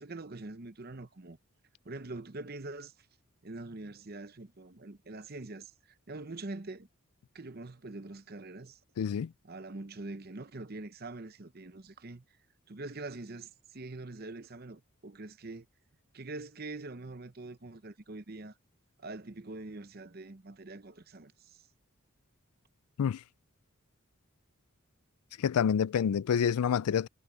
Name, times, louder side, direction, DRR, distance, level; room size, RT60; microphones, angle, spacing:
voice 1, 0.0-1.4 1.8-2.9 3.4-6.9 7.3-8.8 9.4-12.2 12.7-15.7 16.1-18.5 19.0-21.6, right 2 dB, 45° right, 0.8 m, -44 dB
voice 2, 9.0-9.3 23.0-23.2 25.4-27.1, left 7 dB, 90° left, 0.4 m, -27 dB
head